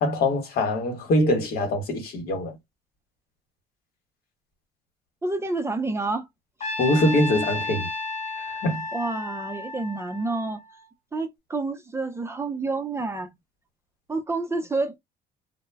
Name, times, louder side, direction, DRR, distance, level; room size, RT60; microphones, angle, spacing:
voice 1, 0.0-2.6 6.8-7.9 8.5-8.8, left 1 dB, 65° left, 1.2 m, -23 dB
voice 2, 5.2-6.2 8.9-10.6 11.1-13.3 14.1-15.0, right 3 dB, 15° right, 0.5 m, -28 dB
Trumpet, 6.6-10.8, left 2 dB, 40° left, 0.9 m, -32 dB
2.1 x 2.1 x 3.3 m
cardioid pair, 110°, 17 cm